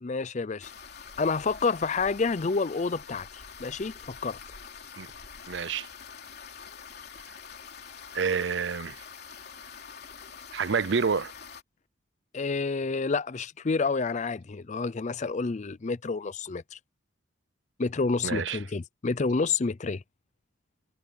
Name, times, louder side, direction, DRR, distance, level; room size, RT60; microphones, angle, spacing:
voice 1, 0.0-0.7 1.2-4.4 12.3-16.8 17.8-20.0, left 4 dB, 40° left, 0.5 m, -29 dB
sound 1, 0.6-11.6, left 6 dB, 55° left, 3.1 m, -46 dB
voice 2, 5.5-5.9 8.1-9.0 10.5-11.3 18.2-18.6, right 5 dB, 65° right, 0.6 m, -28 dB
head